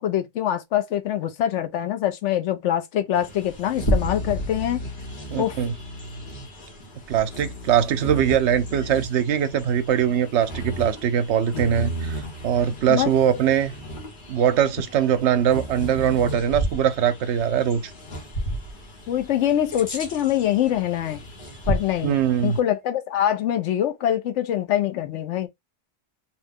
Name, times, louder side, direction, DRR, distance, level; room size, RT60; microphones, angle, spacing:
voice 1, 0.0-4.8 5.4-5.6 12.9-13.1 19.1-21.2 21.7-25.5, left 11 dB, 75° left, 0.9 m, -24 dB
Bird vocalization bird call bird song, 3.1-22.6, right 1 dB, 45° left, 1.0 m, -33 dB
voice 2, 5.3-5.7 7.1-13.7 14.3-17.8 22.0-22.6, right 9 dB, 70° right, 0.8 m, -22 dB
2.8 x 2.1 x 3.4 m
omnidirectional pair, 1.3 m